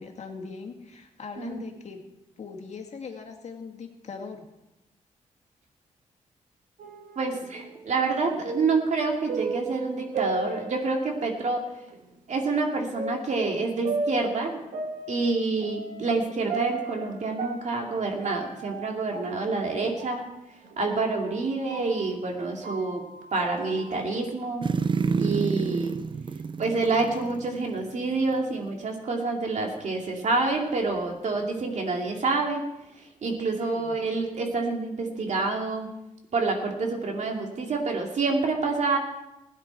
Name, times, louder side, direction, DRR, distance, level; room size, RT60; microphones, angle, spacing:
voice 1, 0.0-2.0 2.4-4.5 33.6-34.0, left 5 dB, 55° left, 3 dB, 2.1 m, -40 dB
sound 1, 6.8-11.4 11.9-12.0 13.0-22.0 22.4-24.3, right 4 dB, 80° right, 1.6 m, -36 dB
voice 2, 7.2-11.6 12.3-14.5 15.1-20.3 20.8-23.0 23.3-24.6 25.2-25.9 26.6-32.7 33.2-35.9 36.3-39.0, right 3 dB, 60° right, 2 dB, 2.4 m, -27 dB
sound 2, 24.6-28.0 28.3-28.4, right 5 dB, 35° right, 0.5 m, -29 dB
16.5 x 10.0 x 4.5 m, 0.92 s
cardioid pair, 80°, 14 cm